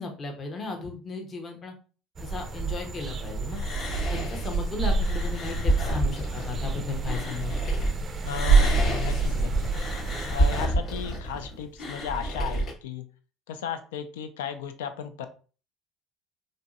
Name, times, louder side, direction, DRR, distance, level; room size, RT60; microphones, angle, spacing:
voice 1, 0.0-1.7 2.2-3.6 4.1-7.6, left 3 dB, 40° left, 3 dB, 0.8 m, -35 dB
sound 1, 2.2-10.7, right 4 dB, 35° right, 0.4 m, -27 dB
sound 2, 3.5-7.9 8.2-12.7, right 1 dB, 55° left, 1.0 m, -29 dB
voice 2, 8.3-9.7 10.3-13.0 13.5-15.3, left 8 dB, 90° left, 9 dB, 0.3 m, -35 dB
3.0 x 2.5 x 2.3 m, 0.37 s
supercardioid pair, 80°, 0 cm